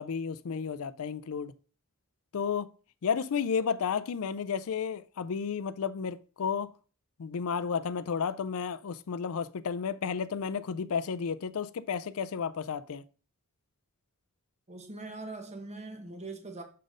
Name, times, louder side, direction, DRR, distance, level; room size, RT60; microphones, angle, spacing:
voice 1, 0.0-1.5 2.3-2.7 3.0-6.7 7.2-13.0, left 6 dB, 70° left, 0.4 m, -32 dB
voice 2, 14.7-16.6, right 2 dB, 30° right, 1.1 m, -42 dB
6.6 x 4.0 x 5.0 m
head